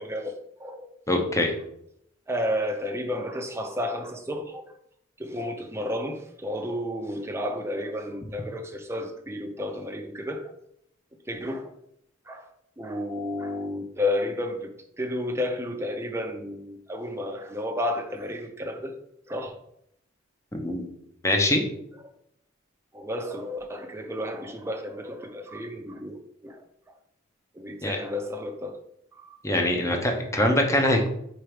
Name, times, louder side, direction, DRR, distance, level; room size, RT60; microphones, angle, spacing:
voice 1, 0.0-0.9 2.3-4.6 5.2-10.5 11.3-11.7 12.3-12.5 12.8-14.7 15.0-18.9 19.3-19.6 22.9-26.6 27.5-28.8 29.1-29.4, left 1 dB, 15° right, 4 dB, 0.7 m, -32 dB
voice 2, 1.1-1.5 20.5-20.9 21.2-21.6 27.8-28.0 29.4-31.1, left 1 dB, 15° left, 2 dB, 0.9 m, -23 dB
4.6 x 4.4 x 5.1 m, 0.73 s
head